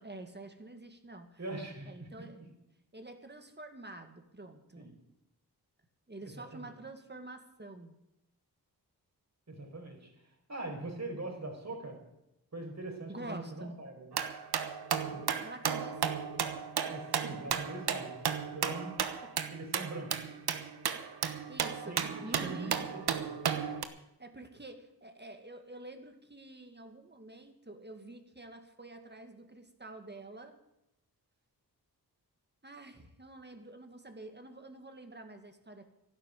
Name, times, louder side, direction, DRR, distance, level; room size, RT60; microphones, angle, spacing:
voice 1, 0.0-1.4 1.9-2.4 2.9-5.0 6.1-8.0 13.1-13.8 15.4-16.4 19.2-19.3 21.5-22.9 24.2-30.6 32.6-35.9, right 2 dB, 25° right, 6 dB, 2.0 m, -48 dB
voice 2, 1.4-2.3 4.8-4.9 6.2-6.7 9.5-10.1 10.5-12.0 12.5-14.1 15.1-15.3 16.8-18.2 18.5-18.9 19.5-20.4 21.9-23.4, right 2 dB, 45° right, 2 dB, 5.1 m, -42 dB
sound 1, 14.1-23.9, right 7 dB, 75° right, 1.2 m, -34 dB
12.0 x 11.0 x 9.2 m, 0.86 s
cardioid pair, 55°, 38 cm